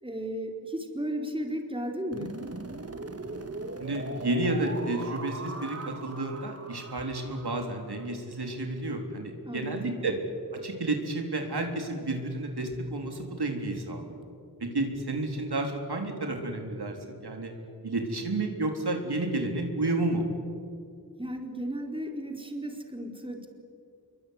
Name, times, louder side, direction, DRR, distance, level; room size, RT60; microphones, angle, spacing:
voice 1, 0.0-2.3 9.4-10.0 21.2-23.5, right 1 dB, 15° right, 3 dB, 4.2 m, -34 dB
sound 1, 2.1-8.0, right 3 dB, 35° right, 2.0 m, -40 dB
voice 2, 3.8-10.1 10.5-14.2 14.6-17.5 17.8-20.2, right 2 dB, 70° right, 3 dB, 3.7 m, -31 dB
26.5 x 23.5 x 9.5 m, 2.3 s
wide cardioid pair, 60°, 40 cm